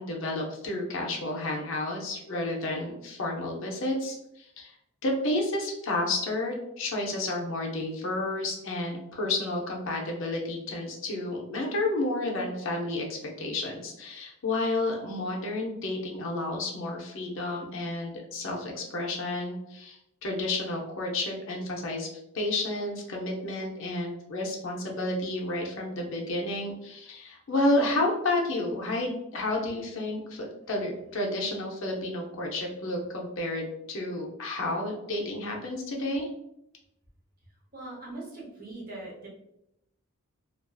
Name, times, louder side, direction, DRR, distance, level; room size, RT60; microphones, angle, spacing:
voice 1, 0.0-4.7 5.0-22.1 22.3-36.3, left 2 dB, 60° left, 0 dB, 0.5 m, -31 dB
voice 2, 37.7-39.3, right 2 dB, 40° right, -4 dB, 0.7 m, -41 dB
2.5 x 2.3 x 2.2 m, 0.82 s
head